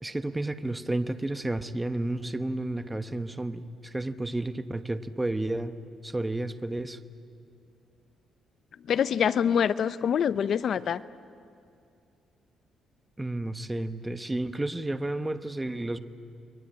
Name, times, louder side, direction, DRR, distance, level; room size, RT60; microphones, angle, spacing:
voice 1, 0.0-5.8 6.0-7.0 13.2-16.0, right 2 dB, 15° right, 10 dB, 1.1 m, -31 dB
voice 2, 8.9-11.0, left 8 dB, 60° left, 15 dB, 0.7 m, -25 dB
29.5 x 22.5 x 8.7 m, 2.5 s
cardioid pair, 90°, 0 cm